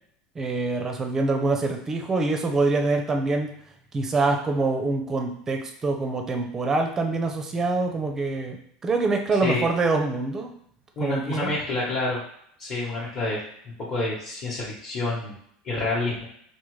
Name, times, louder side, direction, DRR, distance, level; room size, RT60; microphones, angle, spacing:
voice 1, 0.4-3.5 3.9-8.6 8.8-10.5 11.0-11.6, right 3 dB, 20° right, 3 dB, 0.5 m, -25 dB
voice 2, 11.0-12.2 12.6-15.3 15.6-16.2, left 2 dB, 35° left, -7 dB, 1.0 m, -28 dB
4.9 x 2.1 x 3.1 m, 0.69 s
supercardioid pair, 150°, 2 cm